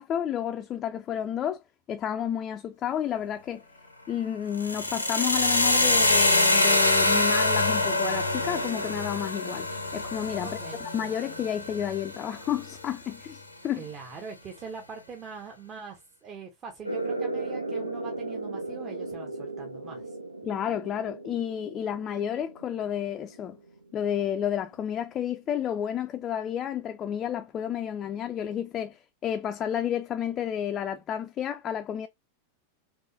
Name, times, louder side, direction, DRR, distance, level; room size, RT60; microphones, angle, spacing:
voice 1, 0.0-1.6 1.9-3.6 4.1-13.8 20.4-23.6 23.9-32.1, left 9 dB, 30° left, 0.4 m, -31 dB
sound 1, 4.5-12.6, left 2 dB, 85° left, 0.7 m, -25 dB
voice 2, 10.4-10.8 13.8-20.2, right 5 dB, 30° right, 0.8 m, -42 dB
sound 2, 16.8-24.0, right 2 dB, 85° right, 0.6 m, -36 dB
3.7 x 3.3 x 2.6 m
figure-of-eight pair, 90°, 0 cm